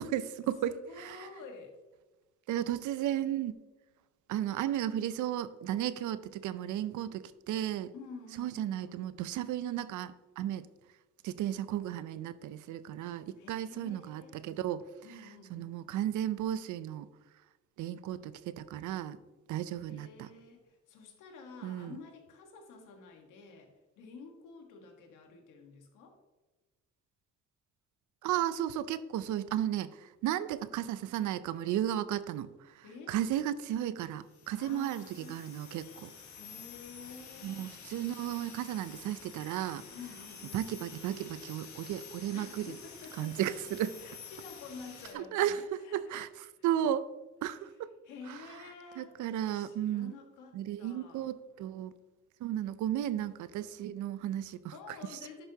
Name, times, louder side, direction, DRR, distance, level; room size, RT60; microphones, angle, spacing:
voice 1, 0.0-1.3 2.5-3.5 4.3-7.9 8.4-10.7 11.2-14.8 15.5-17.1 17.8-19.2 19.5-20.3 21.6-22.0 28.2-32.5 32.8-36.1 37.4-39.8 40.5-42.7 43.2-44.0 45.1-47.1 47.4-47.7 49.0-50.1 50.5-51.9 52.4-54.7, right 11 dB, 80° right, 15 dB, 0.5 m, -34 dB
voice 2, 0.6-1.8 7.9-9.1 13.4-14.4 15.0-15.8 19.9-23.7 24.0-26.2 32.8-33.2 34.6-35.5 36.3-37.7 39.9-40.7 42.3-43.5 44.0-46.6 48.0-49.2 49.5-51.3 54.7-55.5, left 4 dB, 85° left, 3 dB, 1.4 m, -50 dB
sound 1, 34.3-45.1, left 6 dB, 65° left, 1.4 m, -50 dB
10.5 x 5.5 x 2.8 m, 1.1 s
cardioid pair, 90°, 30 cm